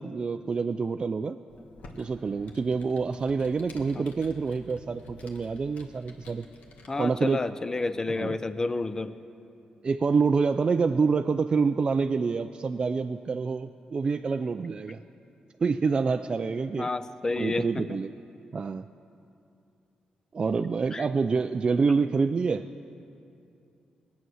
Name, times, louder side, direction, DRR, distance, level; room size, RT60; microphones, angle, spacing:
voice 1, 0.0-1.4 2.0-6.5 7.0-7.4 8.1-8.4 9.8-15.0 15.6-16.9 17.3-18.1 18.5-18.9 20.3-22.7, right 4 dB, 35° right, 8 dB, 0.3 m, -27 dB
Computer keyboard, 1.5-7.3, left 1 dB, 70° left, 1.5 m, -50 dB
voice 2, 6.9-9.2 16.8-18.0 20.9-21.1, left 3 dB, 25° left, 12 dB, 0.5 m, -30 dB
20.0 x 9.2 x 6.3 m, 2.6 s
cardioid pair, 125°, 3 cm